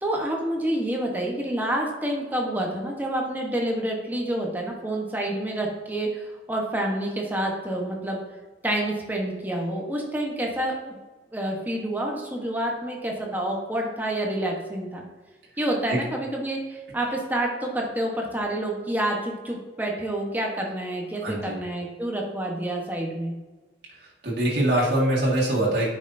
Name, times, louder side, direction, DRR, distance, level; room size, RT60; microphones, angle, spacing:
voice 1, 0.0-8.2 8.6-11.0 11.3-15.0 15.6-23.3, right 1 dB, 10° right, 0 dB, 1.0 m, -28 dB
voice 2, 21.2-21.6 24.2-25.9, right 1 dB, 65° right, -5 dB, 1.9 m, -23 dB
9.4 x 5.4 x 2.7 m, 1.2 s
head